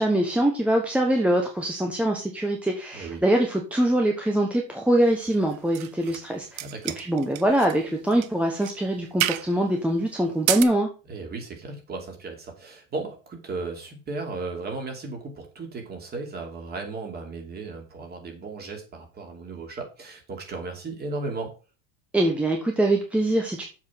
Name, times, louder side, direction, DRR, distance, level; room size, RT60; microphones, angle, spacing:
voice 1, 0.0-6.6 7.0-10.9 22.1-23.6, right 1 dB, 5° right, 1 dB, 1.1 m, -23 dB
voice 2, 2.9-3.2 6.6-7.0 11.1-21.5, right 3 dB, 25° right, 3 dB, 2.9 m, -35 dB
sound 1, 5.2-6.3 6.6-7.8 8.1-8.3 8.6-8.8 9.2-9.5 10.3-10.6, right 15 dB, 55° right, 0.8 m, -29 dB
7.4 x 5.6 x 5.7 m, 0.34 s
supercardioid pair, 145°, 39 cm